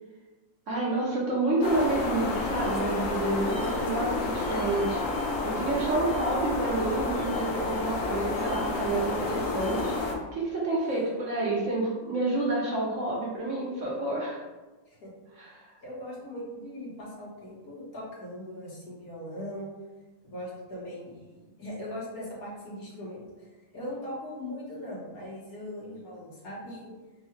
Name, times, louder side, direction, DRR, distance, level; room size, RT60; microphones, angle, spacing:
voice 1, 0.7-10.0 10.3-14.4 15.4-15.8, right 2 dB, 60° right, -4 dB, 0.8 m, -29 dB
sound 1, 1.6-10.1, left 3 dB, 85° left, 0.7 m, -30 dB
voice 2, 15.8-19.7 20.2-23.5 23.7-26.9, left 1 dB, 55° left, -6 dB, 1.4 m, -40 dB
3.6 x 2.3 x 4.3 m, 1.2 s
omnidirectional pair, 2.1 m